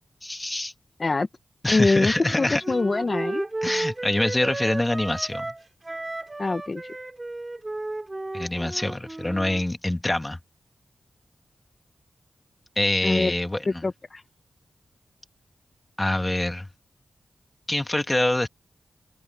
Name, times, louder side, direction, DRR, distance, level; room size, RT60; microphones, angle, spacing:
voice 1, 0.2-0.7 1.6-2.6 3.6-5.6 8.3-10.4 12.8-13.9 16.0-16.7 17.7-18.5, left 1 dB, 15° left, 2.1 m, -25 dB
voice 2, 1.7-3.4 6.4-7.0 13.0-13.3 13.7-14.2, left 3 dB, 40° left, 1.0 m, -24 dB
Wind instrument woodwind instrument, 2.2-9.6, right 2 dB, 25° right, 2.4 m, -33 dB
open air
wide cardioid pair, 80°, 0 cm